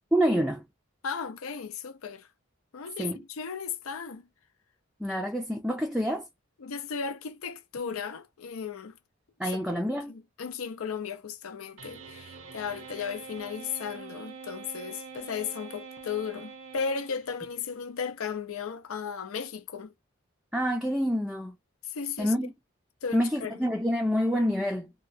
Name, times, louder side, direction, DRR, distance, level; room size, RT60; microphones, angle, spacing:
voice 1, 0.1-0.6 3.0-3.2 5.0-6.3 9.4-10.1 20.5-21.5 22.2-22.5 23.1-24.9, equal, 5° right, 0.4 m, -27 dB
voice 2, 1.0-2.3 2.7-4.3 6.6-9.0 9.5-9.6 10.1-19.9 21.8-22.3 23.0-23.6, left 6 dB, 85° left, 0.5 m, -35 dB
sound 1, 11.8-17.6, right 5 dB, 70° right, 0.6 m, -45 dB
2.8 x 2.2 x 2.6 m
head